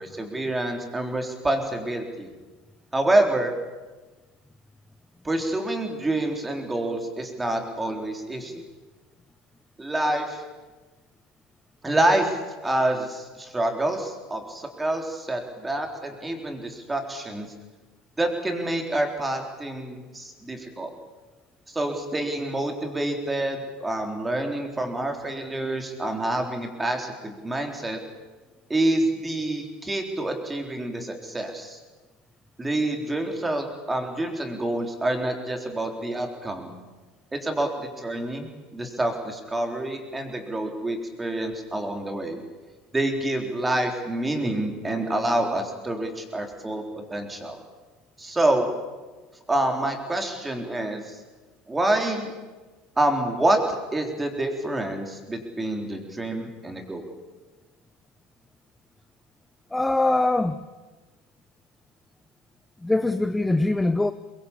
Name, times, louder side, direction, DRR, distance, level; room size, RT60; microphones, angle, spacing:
voice 1, 0.0-2.3 2.9-3.5 5.2-8.6 9.8-10.4 11.8-17.5 18.2-20.9 21.7-28.0 28.7-31.8 32.6-36.7 37.3-42.4 42.9-47.6 48.2-48.7 49.5-51.2 51.7-52.3 53.0-57.0, right 1 dB, 10° right, 4 dB, 3.8 m, -27 dB
voice 2, 59.7-60.6 62.8-64.1, left 2 dB, 5° left, 10 dB, 0.8 m, -22 dB
24.0 x 21.5 x 8.5 m, 1.2 s
supercardioid pair, 135°, 0 cm